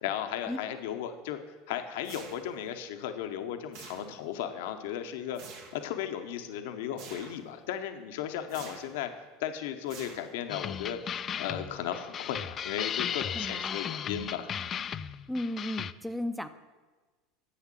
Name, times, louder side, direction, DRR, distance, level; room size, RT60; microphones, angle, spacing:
voice 1, 0.0-1.4 1.7-5.4 5.7-9.1 9.4-14.6, left 10 dB, 70° left, 7 dB, 0.8 m, -35 dB
sound 1, 2.0-2.7 3.7-4.4 5.3-5.9 7.0-7.5 8.5-9.0 9.9-10.6, right 5 dB, 65° right, 1.7 m, -48 dB
sound 2, 10.5-15.9, left 8 dB, 35° left, 0.4 m, -36 dB
voice 2, 13.3-13.8 14.6-14.7 15.3-16.5, left 1 dB, ahead, 10 dB, 0.7 m, -35 dB
9.9 x 7.3 x 7.5 m, 1.3 s
hypercardioid pair, 90°, 0 cm